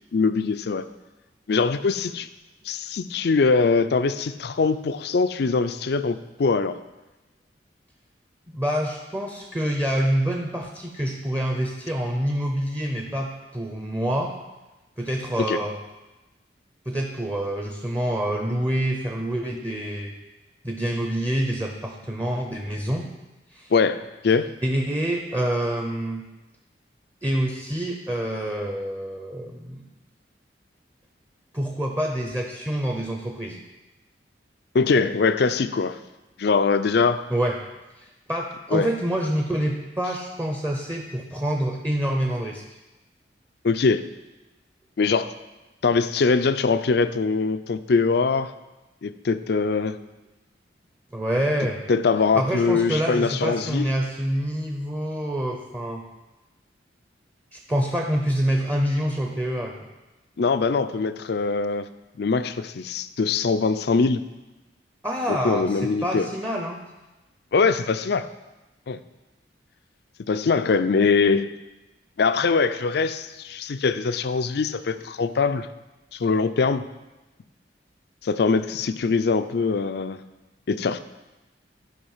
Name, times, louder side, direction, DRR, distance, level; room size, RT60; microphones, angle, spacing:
voice 1, 0.1-0.9 1.5-2.3 2.6-6.8 15.5-15.6 23.7-24.5 34.7-36.0 36.4-37.2 38.7-38.9 43.6-44.0 45.0-45.3 45.8-48.5 49.0-50.0 51.9-53.9 60.4-61.9 62.2-64.2 65.3-66.3 67.5-68.3 68.9-69.0 70.3-71.5 72.2-75.7 76.1-76.9 78.2-80.2 80.7-81.0, left 4 dB, 60° left, 13 dB, 0.4 m, -22 dB
voice 2, 8.5-14.3 15.0-15.8 16.9-20.1 20.6-23.1 23.5-23.7 24.6-26.2 27.2-29.9 31.5-33.6 37.3-37.6 38.0-42.8 51.1-51.8 52.3-56.0 57.5-59.9 65.0-66.8, equal, 15° right, 2 dB, 0.7 m, -27 dB
12.0 x 5.1 x 5.6 m, 1.1 s
head